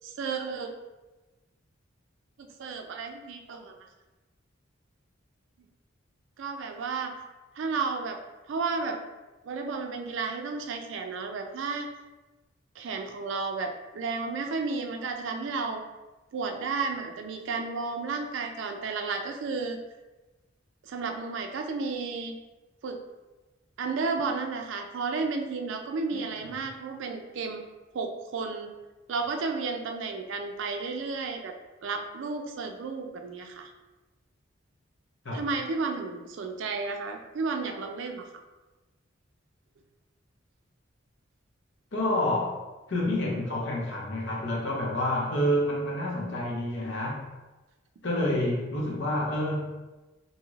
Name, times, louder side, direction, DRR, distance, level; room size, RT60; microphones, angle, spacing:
voice 1, 0.0-0.7 2.6-3.7 6.4-7.1 7.6-8.2 8.5-9.0 9.5-11.9 12.8-15.8 16.3-19.8 20.8-22.3 22.8-23.0 23.8-27.6 27.9-28.7 29.1-31.5 31.8-33.7 35.3-38.3, right 4 dB, 70° right, 4 dB, 0.4 m, -32 dB
voice 2, 26.1-26.5 35.2-35.4 41.9-42.6 42.9-47.3 48.0-49.7, left 1 dB, 65° left, -2 dB, 0.7 m, -28 dB
2.7 x 2.4 x 3.1 m, 1.1 s
head